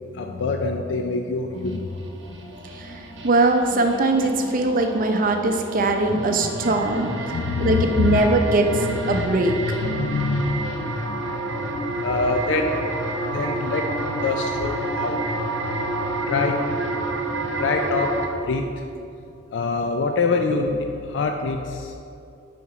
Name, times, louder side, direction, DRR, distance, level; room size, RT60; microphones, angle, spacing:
voice 1, 0.1-1.9 2.3-2.5 6.1-6.7 7.3-8.2 8.7-9.3 9.8-15.4 16.2-16.8 17.6-18.1 18.4-18.8 19.5-21.9, left 4 dB, 70° left, 4 dB, 0.4 m, -26 dB
sound 1, 1.6-18.3, right 1 dB, 75° right, 0.9 m, -29 dB
voice 2, 2.7-7.1 7.6-8.7 9.1-9.5, right 2 dB, 50° right, 4 dB, 0.5 m, -21 dB
5.6 x 4.3 x 4.7 m, 2.6 s
head